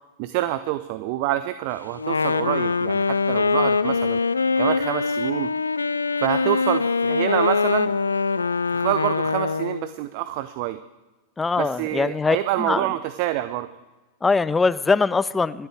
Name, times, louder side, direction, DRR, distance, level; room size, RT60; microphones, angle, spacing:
voice 1, 0.2-4.2 4.6-5.5 6.2-7.9 8.7-10.8 11.6-13.7, right 15 dB, 45° right, 12 dB, 0.6 m, -27 dB
Wind instrument woodwind instrument, 1.9-9.9, left 4 dB, 75° left, 0.4 m, -23 dB
voice 2, 11.4-12.9 14.2-15.7, left 4 dB, 10° left, 17 dB, 0.5 m, -22 dB
27.0 x 12.0 x 3.3 m, 1.1 s
figure-of-eight pair, 90°, 0 cm